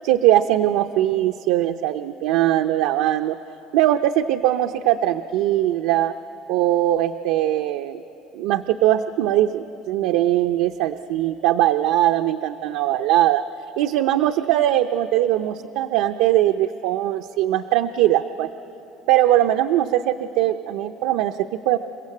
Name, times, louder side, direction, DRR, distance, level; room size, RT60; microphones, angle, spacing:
voice 1, 0.0-3.4 3.7-6.1 6.5-8.0 8.3-13.4 13.8-18.5 19.1-21.8, right 13 dB, 80° right, 7 dB, 0.5 m, -20 dB
28.0 x 15.5 x 8.4 m, 3.0 s
cardioid pair, 145°, 0 cm